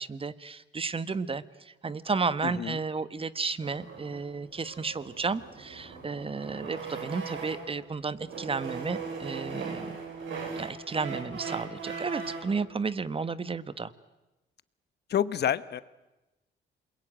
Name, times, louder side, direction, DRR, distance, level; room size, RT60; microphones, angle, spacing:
voice 1, 0.0-10.0 10.6-13.9, right 4 dB, 30° right, 15 dB, 1.3 m, -33 dB
voice 2, 2.4-2.8 15.1-15.8, left 9 dB, 55° left, 16 dB, 1.1 m, -28 dB
sound 1, 3.6-7.8 8.2-12.6, right 5 dB, 75° right, 6.7 m, -39 dB
28.0 x 22.0 x 9.0 m, 1.0 s
cardioid pair, 90°, 20 cm